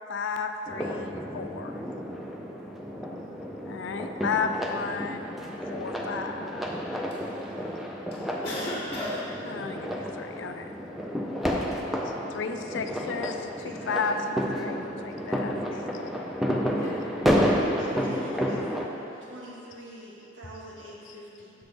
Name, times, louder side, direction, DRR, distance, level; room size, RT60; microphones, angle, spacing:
voice 1, 0.1-1.8 3.6-5.3 5.7-6.7 9.5-10.7 12.3-16.3, left 5 dB, 70° left, 6 dB, 0.4 m, -33 dB
sound 1, 0.7-18.9, equal, ahead, 0.4 m, -31 dB
voice 2, 7.1-7.8 8.1-9.8 16.8-17.0, left 1 dB, 30° left, -6 dB, 0.8 m, -36 dB
voice 3, 13.6-14.1 17.8-18.6 19.1-21.5, equal, 80° right, -5 dB, 1.3 m, -44 dB
6.8 x 6.1 x 3.3 m, 2.9 s
head